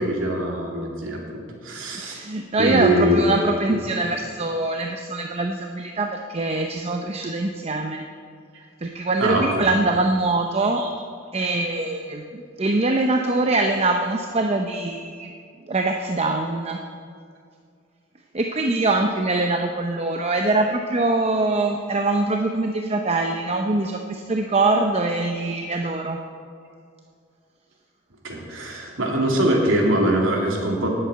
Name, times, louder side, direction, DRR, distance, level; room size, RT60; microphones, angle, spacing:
voice 1, 0.0-2.2 2.6-3.2 3.7-3.8 9.2-9.7 10.8-10.9 28.2-30.9, right 1 dB, 80° right, -1 dB, 2.6 m, -22 dB
voice 2, 2.0-8.0 8.8-10.8 11.3-15.3 15.7-16.8 18.3-26.2, right 2 dB, 30° right, 4 dB, 0.6 m, -23 dB
10.0 x 8.1 x 8.9 m, 2.2 s
head